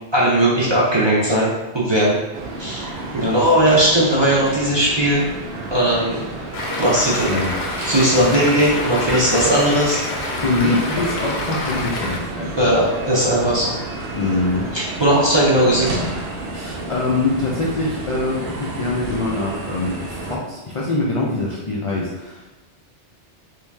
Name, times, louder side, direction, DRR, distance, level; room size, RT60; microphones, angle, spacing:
voice 1, 0.1-1.5 1.7-2.2 2.6-2.9 3.1-5.2 5.7-6.2 6.8-7.3 7.9-10.0 12.6-13.7 14.7-16.0, right 1 dB, 30° right, -7 dB, 0.5 m, -17 dB
sound 1, 2.3-20.4, right 2 dB, 65° right, 0.8 m, -31 dB
Stream, 6.5-12.2, left 2 dB, 75° left, 0.8 m, -27 dB
voice 2, 7.9-8.6 9.1-9.4 10.4-12.8 13.4-13.5 14.1-14.7 16.5-22.5, left 2 dB, 50° left, -5 dB, 0.4 m, -24 dB
3.0 x 2.7 x 3.4 m, 1.1 s
omnidirectional pair, 1.2 m